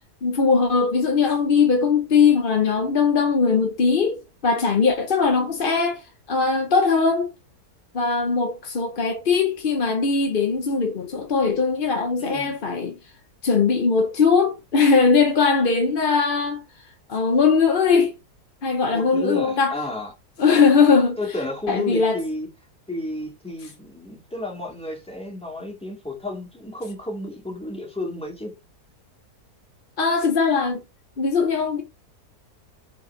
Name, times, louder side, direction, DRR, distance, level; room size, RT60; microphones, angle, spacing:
voice 1, 0.2-7.3 7.9-13.0 13.4-16.6 17.1-18.1 18.6-19.8 20.4-21.2 21.7-22.2 30.0-30.8 31.2-31.8, left 5 dB, 40° left, 0.9 m, -20 dB
voice 2, 12.2-12.5 18.9-20.1 21.2-22.5 22.9-28.6, left 2 dB, 5° left, 2.2 m, -31 dB
4.7 x 4.7 x 4.5 m
omnidirectional pair, 1.8 m